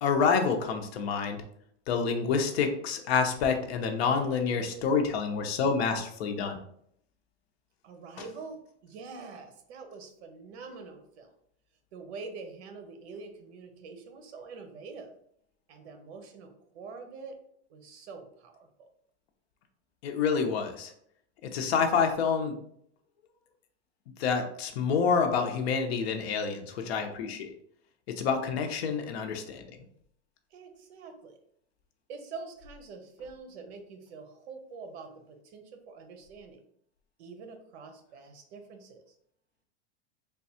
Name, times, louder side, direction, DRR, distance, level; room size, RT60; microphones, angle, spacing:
voice 1, 0.0-1.4 1.9-6.6 20.0-20.9 21.5-22.6 24.2-27.5 28.1-29.7, left 5 dB, 60° left, 4 dB, 0.8 m, -28 dB
voice 2, 7.8-11.3 11.9-15.1 15.7-17.3 17.7-18.9 30.5-31.4 32.1-36.6 37.2-39.1, right 4 dB, 60° right, 6 dB, 0.9 m, -45 dB
3.4 x 2.3 x 4.2 m, 0.69 s
supercardioid pair, 150°, 35 cm